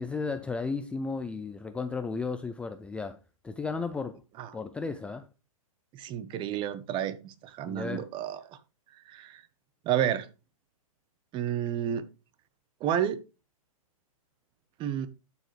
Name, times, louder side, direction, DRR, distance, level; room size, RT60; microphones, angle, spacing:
voice 1, 0.0-3.2 3.4-4.2 4.5-5.3 7.7-8.1, left 4 dB, 5° left, 0.4 m, -34 dB
voice 2, 5.9-8.6 9.1-9.4 9.8-10.3 11.3-12.1 12.8-13.2 14.8-15.1, right 10 dB, 25° right, 1.0 m, -30 dB
12.0 x 6.9 x 3.2 m
hypercardioid pair, 135°, 18 cm